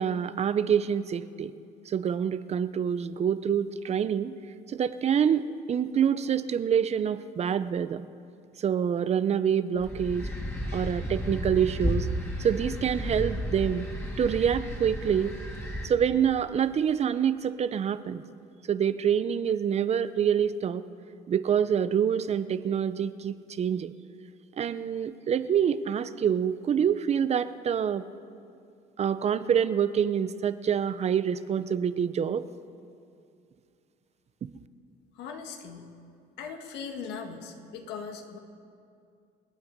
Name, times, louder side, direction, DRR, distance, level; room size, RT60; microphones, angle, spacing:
voice 1, 0.0-1.5 1.9-4.4 4.7-8.0 8.6-10.3 10.7-12.1 12.4-13.9 14.2-15.4 15.8-18.2 18.7-20.8 21.3-23.9 24.6-28.0 29.0-32.4 34.4-34.5, right 8 dB, 40° right, 14 dB, 0.6 m, -26 dB
sound 1, 9.8-15.9, equal, 15° left, 2.5 m, -33 dB
voice 2, 35.2-35.9 36.4-38.4, left 6 dB, 85° left, 4 dB, 1.7 m, -39 dB
27.0 x 8.9 x 5.2 m, 2.4 s
cardioid pair, 110°, 17 cm